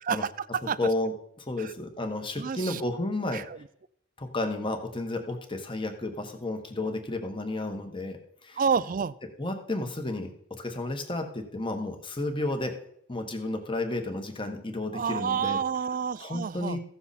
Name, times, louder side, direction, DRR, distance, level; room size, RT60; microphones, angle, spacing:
voice 1, 0.0-0.8 1.6-1.7 2.4-2.8 3.3-3.6 8.6-9.2 14.9-16.8, right 6 dB, 40° right, 18 dB, 0.4 m, -29 dB
voice 2, 0.8-3.5 4.2-8.6 9.4-12.8 13.1-15.6 16.2-16.8, left 2 dB, 25° left, 5 dB, 1.4 m, -32 dB
15.5 x 7.0 x 4.2 m, 0.69 s
head